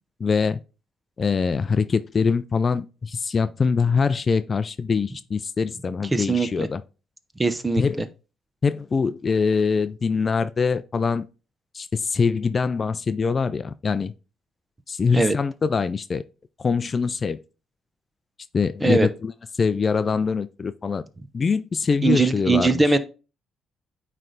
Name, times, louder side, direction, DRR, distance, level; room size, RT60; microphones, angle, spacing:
voice 1, 0.2-0.6 1.2-6.8 7.8-8.0 8.6-11.3 11.7-14.1 14.9-16.2 16.6-17.4 18.5-19.3 19.6-21.0 21.3-22.8, left 5 dB, 40° left, 0.4 m, -23 dB
voice 2, 6.1-6.7 7.4-7.8 15.1-15.4 18.8-19.1 22.0-23.0, right 3 dB, 20° right, 0.8 m, -20 dB
9.1 x 3.3 x 3.9 m
cardioid pair, 90°, 0 cm